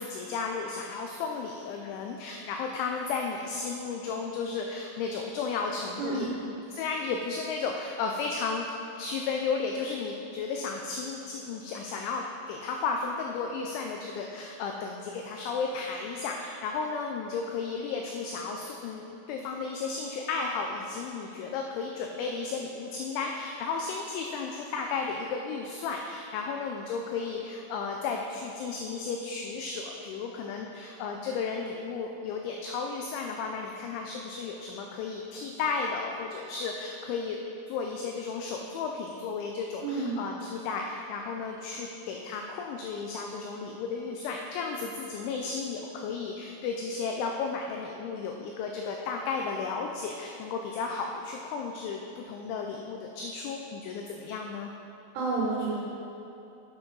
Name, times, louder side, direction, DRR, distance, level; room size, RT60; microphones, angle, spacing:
voice 1, 0.0-8.7 9.0-37.4 37.7-54.7, left 4 dB, 85° left, 2 dB, 2.6 m, -34 dB
voice 2, 6.0-6.3 39.8-40.2 55.1-55.7, right 3 dB, 70° right, -5 dB, 2.8 m, -29 dB
9.6 x 8.4 x 3.9 m, 2.8 s
omnidirectional pair, 6.0 m